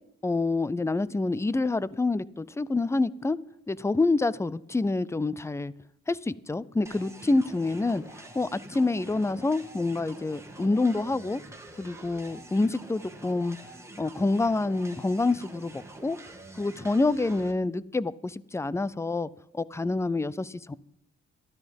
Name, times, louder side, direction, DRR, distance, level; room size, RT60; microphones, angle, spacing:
voice 1, 0.2-3.4 3.7-5.7 6.1-11.4 11.8-13.6 14.0-16.2 16.6-20.7, left 3 dB, 10° left, 20 dB, 0.5 m, -27 dB
sound 1, 6.9-17.5, right 1 dB, 10° right, 2.4 m, -46 dB
13.5 x 13.0 x 5.3 m, 0.73 s
cardioid pair, 90°, 30 cm